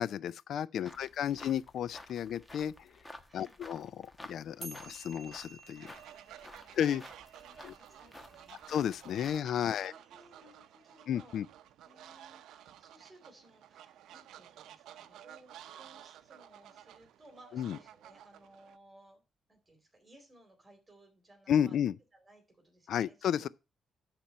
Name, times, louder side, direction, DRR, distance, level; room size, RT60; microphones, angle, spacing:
voice 1, 0.0-2.9 3.3-5.9 6.8-7.0 7.6-7.7 8.7-9.9 11.1-11.5 17.5-17.8 21.5-21.9 22.9-23.5, left 9 dB, 70° left, 0.4 m, -32 dB
sound 1, 0.8-9.4, left 1 dB, 15° left, 1.2 m, -53 dB
voice 2, 3.3-3.6 6.5-6.7 7.4-8.6 9.6-11.4 11.8-19.2 19.5-21.8 22.1-23.5, right 1 dB, 20° right, 3.8 m, -60 dB
sound 2, 4.6-11.2, right 3 dB, 35° right, 2.9 m, -54 dB
Fowl, 5.7-18.8, right 11 dB, 85° right, 0.6 m, -53 dB
12.5 x 4.5 x 5.4 m
cardioid pair, 100°, 0 cm